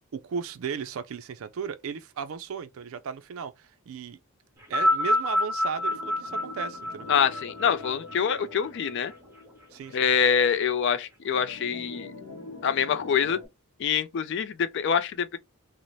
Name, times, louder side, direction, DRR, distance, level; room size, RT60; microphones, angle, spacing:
voice 1, 0.1-4.2 4.7-7.1 9.7-10.1, right 6 dB, 70° right, 0.4 m, -35 dB
sound 1, 4.6-9.1 10.0-10.1, left 1 dB, 10° right, 0.7 m, -28 dB
sound 2, 5.8-10.1 10.5-10.6 11.3-13.5, left 3 dB, 80° left, 0.8 m, -44 dB
voice 2, 7.1-9.1 9.9-12.1 12.6-13.4 13.8-15.4, left 7 dB, 55° left, 0.3 m, -25 dB
2.6 x 2.0 x 3.1 m
head